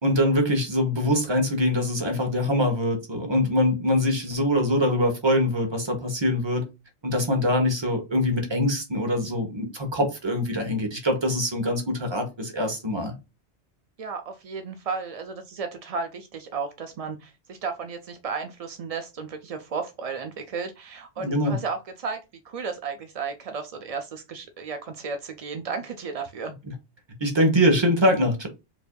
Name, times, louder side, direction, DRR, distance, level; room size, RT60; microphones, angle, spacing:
voice 1, 0.0-6.6 7.0-13.1 21.2-21.6 27.2-28.5, left 1 dB, 25° right, 0.9 m, -23 dB
voice 2, 14.0-26.5, right 5 dB, 65° right, 0.3 m, -34 dB
4.9 x 2.6 x 2.2 m
omnidirectional pair, 1.2 m